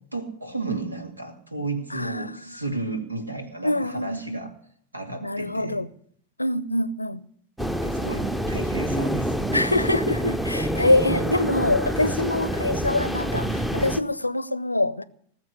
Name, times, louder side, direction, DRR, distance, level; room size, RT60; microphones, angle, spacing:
voice 1, 0.1-4.5 4.9-5.8 7.7-9.5, right 2 dB, 85° right, 2.4 m, -33 dB
voice 2, 1.9-2.6 3.6-4.4 5.2-5.9 6.4-7.2 9.5-15.0, left 2 dB, 85° left, 0.6 m, -25 dB
sound 1, 7.6-14.0, equal, 5° right, 0.8 m, -27 dB
19.5 x 7.4 x 9.6 m
figure-of-eight pair, 90°, 0 cm